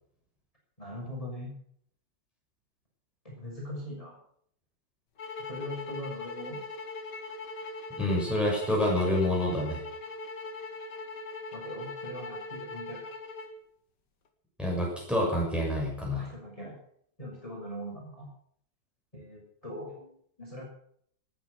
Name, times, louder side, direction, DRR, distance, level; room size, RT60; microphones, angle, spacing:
voice 1, 0.8-1.5 3.2-4.2 5.5-6.6 11.5-13.1 16.1-16.8 17.2-18.3 19.1-20.1 20.4-20.7, left 1 dB, 20° left, -3 dB, 6.5 m, -40 dB
sound 1, 5.2-13.6, left 3 dB, 70° left, 2.4 m, -40 dB
voice 2, 8.0-9.8 14.6-16.3, left 1 dB, ahead, -3 dB, 6.6 m, -27 dB
19.5 x 9.9 x 6.4 m, 0.64 s
omnidirectional pair, 2.0 m